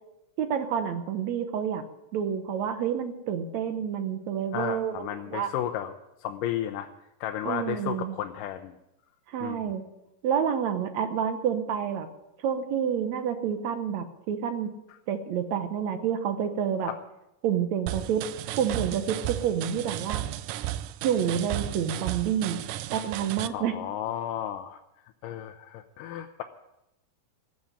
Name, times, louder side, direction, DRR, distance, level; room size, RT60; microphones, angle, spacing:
voice 1, 0.4-1.8 2.1-5.5 7.5-8.2 9.3-9.9 10.2-12.1 12.4-14.7 15.1-16.9 17.4-18.2 18.6-20.2 21.0-22.6 22.9-23.8, right 8 dB, 65° right, 9 dB, 2.1 m, -28 dB
voice 2, 4.5-5.9 6.2-6.9 7.2-8.8 9.4-9.7 16.9-17.0 23.5-24.8 25.2-26.4, left 11 dB, 80° left, 5 dB, 2.3 m, -33 dB
sound 1, 17.9-23.5, right 13 dB, 80° right, 2.2 m, -34 dB
15.0 x 7.5 x 9.9 m, 0.89 s
omnidirectional pair, 3.8 m